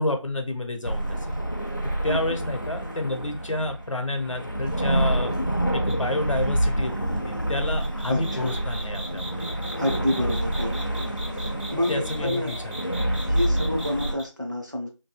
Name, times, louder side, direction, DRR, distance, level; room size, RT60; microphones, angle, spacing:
voice 1, 0.0-1.4 2.0-5.3 5.7-9.5 10.2-10.3 11.9-12.7, left 2 dB, 75° left, 6 dB, 0.7 m, -29 dB
sound 1, 0.8-14.2, right 1 dB, 40° left, 0.4 m, -28 dB
sound 2, 5.9-6.1 7.8-14.2, right 1 dB, 75° right, 1.3 m, -39 dB
voice 2, 8.1-8.5 9.8-12.5 13.2-14.9, left 1 dB, 40° right, 1 dB, 0.4 m, -29 dB
2.8 x 2.6 x 2.4 m, 0.30 s
figure-of-eight pair, 175°, 16 cm